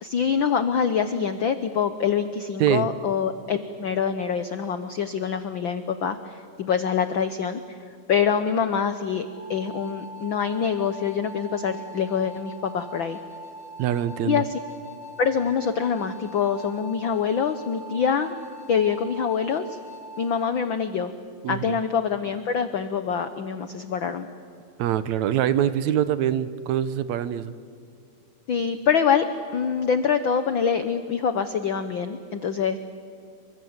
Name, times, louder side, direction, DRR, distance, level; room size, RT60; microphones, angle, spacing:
voice 1, 0.0-7.8 8.1-13.2 14.2-14.6 15.2-18.4 18.7-19.8 20.2-21.1 21.5-24.3 28.5-29.2 29.5-32.8, left 7 dB, 85° left, 10 dB, 1.0 m, -25 dB
sound 1, 9.3-20.5, equal, 35° left, 1.8 m, -42 dB
voice 2, 13.8-14.4 21.4-21.8 24.8-27.5, right 11 dB, 75° right, 13 dB, 2.0 m, -24 dB
28.5 x 24.5 x 8.0 m, 2.4 s
omnidirectional pair, 3.6 m